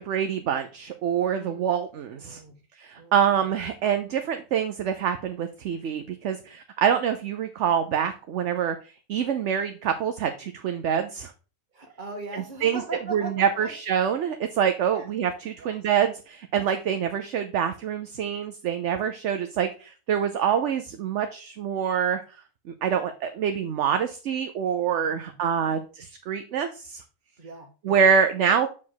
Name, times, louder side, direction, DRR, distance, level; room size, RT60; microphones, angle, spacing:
voice 1, 0.0-2.4 2.8-8.8 9.1-11.3 12.6-12.8 13.1-22.2 22.7-27.0 27.8-28.7, right 8 dB, 65° right, 7 dB, 0.9 m, -25 dB
voice 2, 1.3-1.7 2.2-2.6 3.0-3.2 11.7-13.8 14.9-15.1 15.6-15.8 25.0-25.4 27.4-28.0, right 2 dB, 35° right, 3 dB, 1.7 m, -40 dB
7.1 x 4.9 x 3.9 m, 0.35 s
omnidirectional pair, 1.4 m